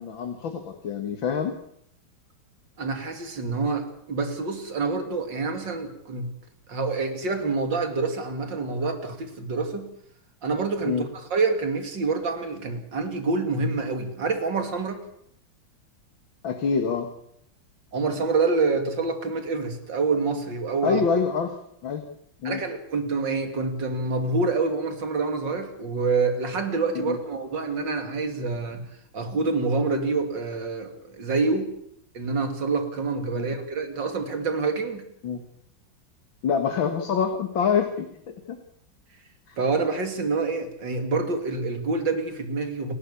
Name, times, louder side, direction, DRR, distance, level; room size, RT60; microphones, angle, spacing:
voice 1, 0.0-1.5 10.8-11.1 16.4-17.1 20.8-21.5 21.8-22.0 22.4-22.6 27.0-27.2 33.4-33.5 35.2-35.4 36.4-38.6 39.5-39.6, left 6 dB, 85° left, 6 dB, 2.6 m, -26 dB
voice 2, 2.8-6.3 6.7-9.9 10.4-15.0 17.9-21.0 22.4-28.8 29.1-31.7 32.1-35.0 39.6-42.9, right 4 dB, 65° right, 7 dB, 3.4 m, -27 dB
28.5 x 12.5 x 8.5 m, 0.72 s
omnidirectional pair, 2.1 m